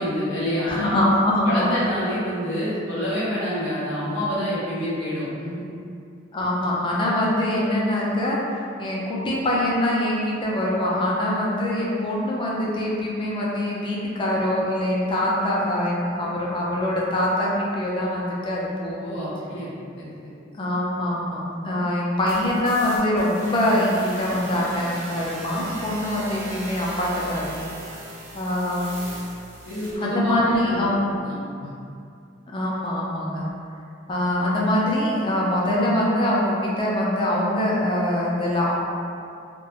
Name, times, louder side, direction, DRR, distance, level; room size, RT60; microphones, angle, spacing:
voice 1, 0.0-0.9 1.4-5.6 18.9-19.7 20.0-20.3 29.6-30.8 31.2-31.4 31.6-31.7, equal, 65° left, -9 dB, 0.7 m, -27 dB
voice 2, 0.6-1.7 6.3-8.4 8.8-19.1 20.5-27.5 28.3-29.0 30.0-31.2 32.5-33.5 34.1-38.7, left 1 dB, 25° left, -5 dB, 0.4 m, -23 dB
sound 1, 22.3-30.0, right 1 dB, 85° right, 0.6 m, -38 dB
2.3 x 2.1 x 2.9 m, 2.5 s
head